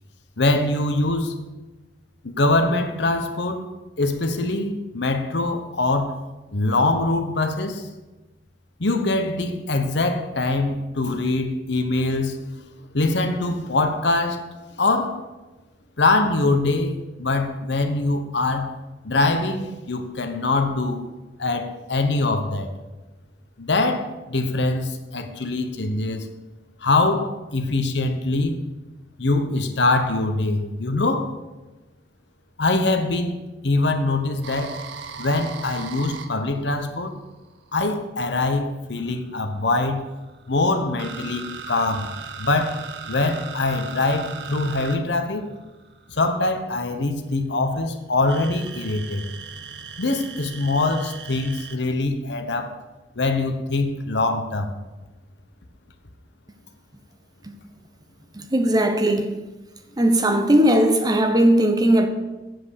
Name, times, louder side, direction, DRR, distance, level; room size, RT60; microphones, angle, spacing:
voice 1, 0.4-1.4 2.2-3.7 4.0-6.2 6.5-7.9 8.8-12.4 12.9-14.5 14.8-15.2 16.0-18.7 19.0-21.0 21.4-22.7 23.6-26.3 26.8-28.6 29.2-31.3 32.6-34.8 35.2-37.1 37.7-40.0 40.5-42.1 42.4-45.4 46.1-49.2 50.0-52.7 53.2-54.7, left 2 dB, 70° left, 1.0 m, -23 dB
sound 1, 34.4-37.9 39.0-46.4 48.3-51.8, right 6 dB, 70° right, 0.8 m, -38 dB
voice 2, 58.3-59.4 60.0-62.1, right 1 dB, 20° right, 0.8 m, -18 dB
7.8 x 7.8 x 6.5 m
head